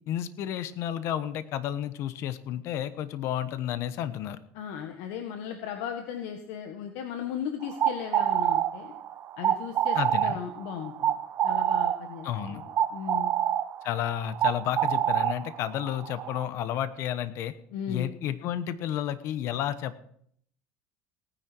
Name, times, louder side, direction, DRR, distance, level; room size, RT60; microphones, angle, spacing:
voice 1, 0.1-4.4 9.9-10.4 12.2-12.6 13.8-17.5 17.9-20.0, left 11 dB, 55° left, 13 dB, 1.1 m, -31 dB
voice 2, 4.5-8.9 9.4-11.2 11.4-12.6 12.9-13.3 17.7-18.1, left 8 dB, 75° left, 5 dB, 1.6 m, -36 dB
sound 1, 7.6-16.5, right 10 dB, 45° right, 0.9 m, -27 dB
18.0 x 10.0 x 4.6 m, 0.66 s
supercardioid pair, 120°, 5 cm